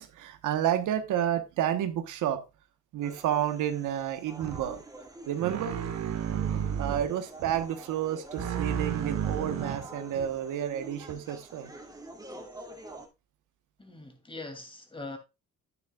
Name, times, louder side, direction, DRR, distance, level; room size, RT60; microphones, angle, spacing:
voice 1, 0.0-2.4 2.9-4.8 5.3-5.8 6.3-11.7, right 10 dB, 85° right, 1.2 m, -30 dB
sound 1, 3.0-13.1, right 1 dB, 10° right, 2.5 m, -47 dB
sound 2, 4.4-4.7 5.4-7.1 7.4-7.7 8.4-10.3 11.1-11.2, right 8 dB, 60° right, 1.7 m, -32 dB
voice 2, 13.8-15.2, left 2 dB, 15° left, 2.7 m, -42 dB
9.6 x 9.4 x 2.4 m
cardioid pair, 90°, 30 cm